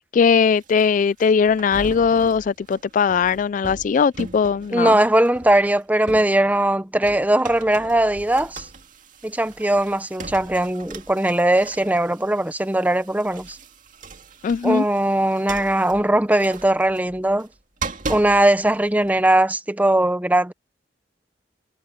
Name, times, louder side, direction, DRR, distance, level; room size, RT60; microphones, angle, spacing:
voice 1, 0.1-5.0 14.4-14.8, left 6 dB, 45° left, 0.3 m, -19 dB
sound 1, 0.6-6.7 7.0-19.2, right 3 dB, 45° right, 2.2 m, -39 dB
voice 2, 4.7-8.7 9.2-13.6 14.6-17.5 18.1-20.5, right 1 dB, 10° right, 0.7 m, -19 dB
head